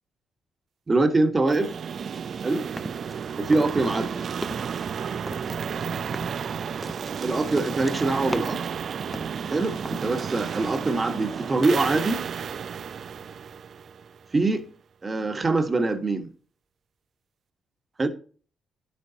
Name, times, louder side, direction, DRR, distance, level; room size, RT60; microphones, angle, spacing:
voice 1, 0.9-1.7 2.4-2.6 3.4-4.1 7.2-8.6 9.5-12.2 14.3-14.6 15.0-16.3 18.0-18.1, right 2 dB, 25° right, 1.4 m, -24 dB
sound 1, 1.5-14.3, right 7 dB, 50° right, 0.4 m, -32 dB
sound 2, 2.0-3.2 3.5-4.1 4.3-4.8 5.3-8.7 9.1-10.1, equal, 5° left, 0.5 m, -38 dB
11.0 x 8.0 x 2.8 m
cardioid pair, 90°, 0 cm